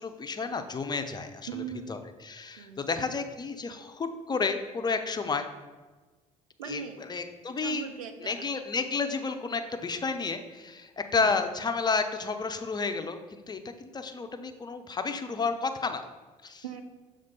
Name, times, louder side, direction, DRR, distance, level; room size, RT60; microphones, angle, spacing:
voice 1, 0.0-1.5 1.9-2.0 2.2-5.5 6.6-6.8 7.1-7.8 8.2-16.0 16.4-16.6, left 4 dB, 25° left, 7 dB, 0.6 m, -31 dB
voice 2, 1.5-2.0 2.6-2.9 6.6-7.0 7.6-8.4 11.2-11.4 16.6-16.8, right 7 dB, 75° right, 7 dB, 0.6 m, -39 dB
6.5 x 3.6 x 5.4 m, 1.3 s
figure-of-eight pair, 55°, 18 cm